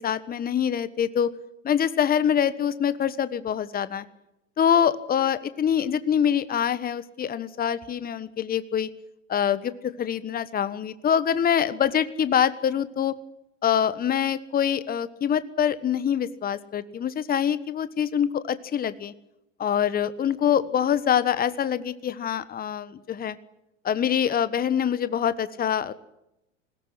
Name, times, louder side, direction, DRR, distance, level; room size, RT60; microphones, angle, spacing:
voice 1, 0.0-1.3 1.6-4.0 4.6-8.9 9.3-13.2 13.6-19.1 19.6-23.4 23.8-25.9, left 9 dB, 25° left, 15 dB, 1.3 m, -25 dB
20.5 x 17.0 x 9.8 m, 0.86 s
hypercardioid pair, 100°, 37 cm